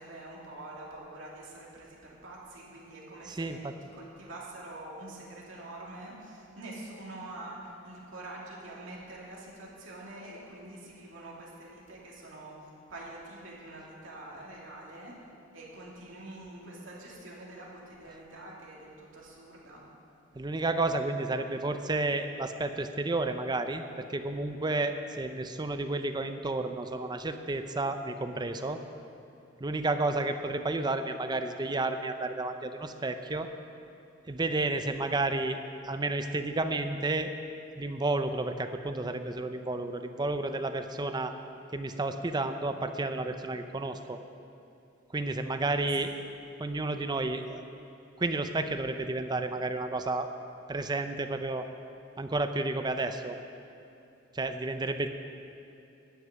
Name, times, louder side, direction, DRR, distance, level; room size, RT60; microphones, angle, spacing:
voice 1, 0.0-15.2 15.5-19.8 45.8-46.1, right 2 dB, 70° right, -4 dB, 2.8 m, -46 dB
voice 2, 3.3-3.7 20.3-23.8 24.1-28.8 29.6-33.5 34.3-35.6 35.8-37.3 37.8-41.3 41.7-44.2 45.1-46.1 46.6-47.7 48.2-50.3 50.7-51.7 52.2-53.4 54.3-55.1, right 2 dB, 20° right, 8 dB, 0.6 m, -31 dB
12.5 x 6.6 x 9.0 m, 2.7 s
head